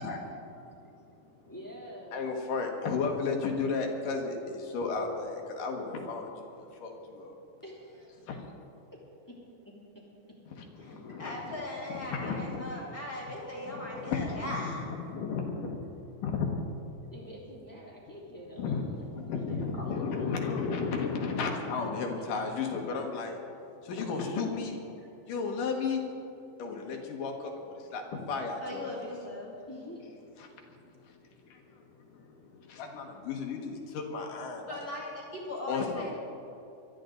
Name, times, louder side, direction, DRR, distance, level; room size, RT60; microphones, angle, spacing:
voice 1, 0.7-1.5 2.1-7.4 8.2-8.5 10.8-11.6 12.1-12.7 13.7-16.6 18.6-18.8 19.2-23.4 23.8-24.8 25.3-26.0 26.6-29.1 30.4-34.9 35.7-36.2, left 4 dB, 85° left, 2 dB, 3.3 m, -34 dB
voice 2, 1.5-2.3 5.8-5.9 7.6-8.3 9.3-9.4 9.6-10.4 10.9-11.0 11.8-12.2 13.3-14.4 17.1-20.6 21.7-22.4 29.7-30.1, equal, 5° left, -5 dB, 2.6 m, -47 dB
voice 3, 11.2-14.9 19.8-19.9 28.6-29.6 34.7-36.2, left 1 dB, 30° left, -4 dB, 2.9 m, -39 dB
22.0 x 13.5 x 3.9 m, 2.7 s
omnidirectional pair, 3.7 m